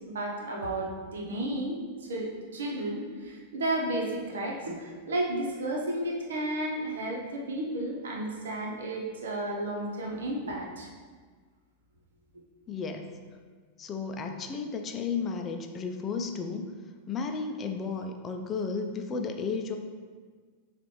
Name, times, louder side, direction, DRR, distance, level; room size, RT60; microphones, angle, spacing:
voice 1, 0.1-1.8 2.1-10.9, right 1 dB, 80° right, -2 dB, 0.9 m, -32 dB
voice 2, 12.7-13.1 13.8-16.7 17.1-19.8, left 5 dB, 30° left, 5 dB, 0.5 m, -33 dB
6.7 x 2.5 x 3.1 m, 1.5 s
hypercardioid pair, 105°, 0 cm